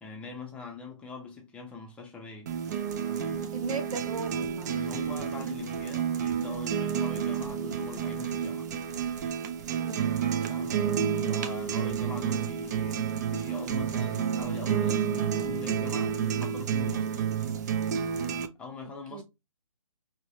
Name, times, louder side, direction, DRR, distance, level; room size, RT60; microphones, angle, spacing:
voice 1, 0.0-2.5 3.0-3.4 4.7-8.7 10.5-10.9 11.3-17.3 18.6-19.2, left 4 dB, 5° left, 0.6 m, -42 dB
sound 1, 2.5-18.5, right 8 dB, 30° right, 0.4 m, -30 dB
voice 2, 3.5-4.8 9.8-10.2 18.8-19.2, right 4 dB, 85° right, 0.8 m, -38 dB
4.6 x 2.2 x 2.7 m
hypercardioid pair, 155°, 18 cm